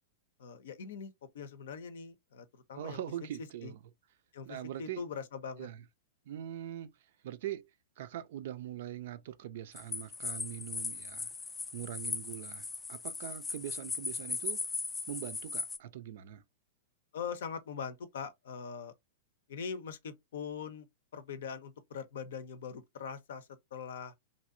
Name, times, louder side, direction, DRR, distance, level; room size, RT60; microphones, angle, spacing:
voice 1, 0.4-3.0 3.6-3.7 4.3-5.7 17.1-18.9 19.5-20.9 21.1-24.1, left 6 dB, 65° left, 0.6 m, -42 dB
voice 2, 2.8-3.8 4.5-5.0 5.6-5.8 6.3-6.9 7.2-7.7 8.0-11.3 11.7-14.6 15.1-16.4, right 11 dB, 55° right, 0.4 m, -42 dB
sound 1, 9.8-15.8, left 4 dB, 15° left, 0.4 m, -38 dB
3.2 x 2.6 x 2.5 m
figure-of-eight pair, 100°, 0 cm